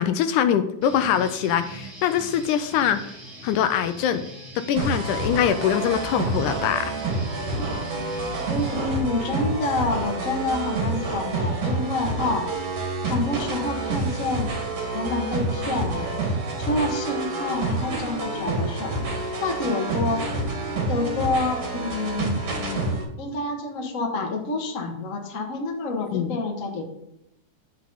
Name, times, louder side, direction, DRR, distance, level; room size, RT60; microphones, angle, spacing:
voice 1, 0.0-3.2 3.4-4.3 4.6-6.9 26.0-26.3, left 9 dB, 80° left, 10 dB, 2.0 m, -23 dB
Guitar, 0.8-8.8, right 1 dB, 25° right, 2.1 m, -41 dB
sound 1, 4.8-23.0, right 2 dB, 50° right, 2.6 m, -28 dB
voice 2, 8.5-12.5 13.0-14.5 14.9-18.9 19.4-20.2 20.9-26.9, left 2 dB, 50° left, 1 dB, 0.9 m, -28 dB
9.5 x 7.5 x 4.0 m, 0.82 s
omnidirectional pair, 3.8 m